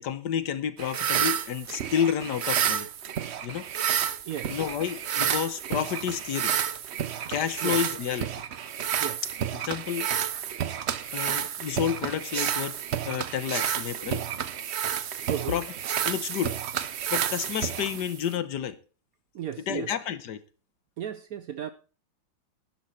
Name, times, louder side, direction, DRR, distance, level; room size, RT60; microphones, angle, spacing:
voice 1, 0.0-2.9 3.4-3.7 4.5-6.5 7.3-8.3 9.5-10.1 11.1-12.8 13.1-14.3 15.5-15.7 16.0-16.6 17.1-18.8 19.7-20.4, left 9 dB, 65° left, 1.4 m, -30 dB
sound 1, 0.8-18.4, right 9 dB, 90° right, 0.5 m, -30 dB
voice 2, 4.3-4.6 7.6-7.8 9.0-9.2 15.3-15.6 19.3-19.9 21.0-21.7, right 10 dB, 65° right, 0.9 m, -34 dB
11.5 x 10.5 x 4.4 m
omnidirectional pair, 2.1 m